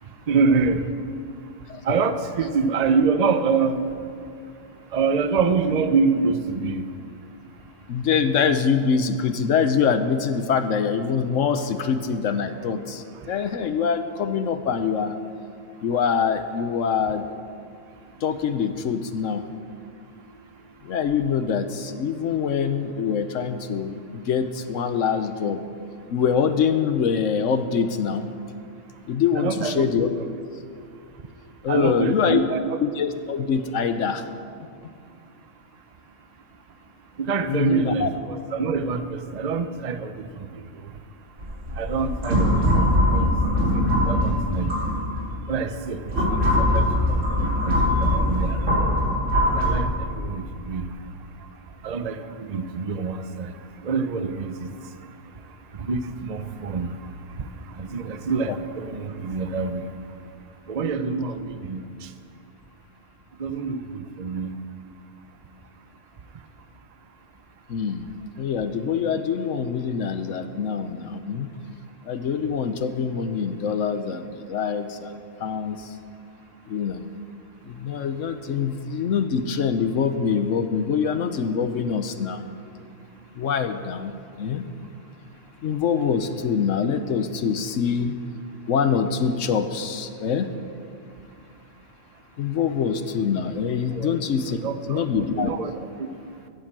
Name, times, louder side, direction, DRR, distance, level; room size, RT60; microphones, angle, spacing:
voice 1, 0.3-0.9 1.8-3.9 4.9-6.9 29.4-29.9 31.7-32.8 37.2-40.5 41.7-45.0 45.5-48.8 49.5-50.9 51.8-53.5 53.8-54.7 55.7-57.1 57.4-57.5 57.7-59.9 60.7-62.1 63.4-64.6 94.0-94.2 94.6-95.1 95.4-95.7 96.0-96.1, right 5 dB, 40° right, 9 dB, 0.7 m, -26 dB
voice 2, 7.9-15.2 15.8-17.3 18.2-19.4 20.8-25.6 26.1-28.3 29.1-30.1 31.6-32.5 32.8-34.2 37.5-38.1 58.5-58.6 67.7-68.0 68.4-71.5 72.0-75.1 75.4-76.0 76.7-77.0 77.6-82.4 83.4-84.7 85.6-88.2 88.7-90.5 92.4-94.6 94.9-95.5, left 6 dB, 75° left, 9 dB, 1.1 m, -24 dB
sound 1, 41.4-45.3 45.8-49.7, left 1 dB, 70° right, 4.5 m, -21 dB
15.5 x 9.9 x 7.5 m, 2.4 s
omnidirectional pair, 1.3 m